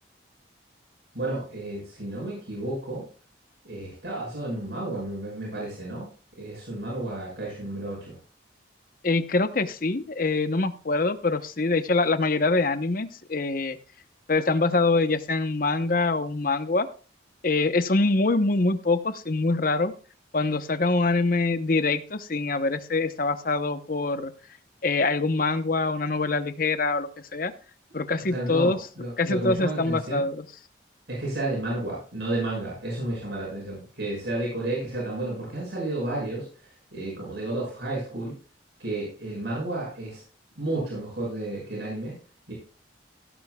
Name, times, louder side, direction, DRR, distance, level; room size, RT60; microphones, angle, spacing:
voice 1, 1.1-3.1 3.6-6.1 6.4-8.2 28.3-30.2 31.1-38.3 38.8-40.2 40.6-42.1 42.5-42.6, right 2 dB, 65° right, -4 dB, 6.5 m, -32 dB
voice 2, 9.0-13.8 14.3-16.9 17.4-19.9 20.3-24.3 24.8-27.5 27.9-28.8 29.2-30.4, left 3 dB, 50° left, 10 dB, 0.9 m, -24 dB
16.0 x 11.0 x 2.3 m, 0.39 s
head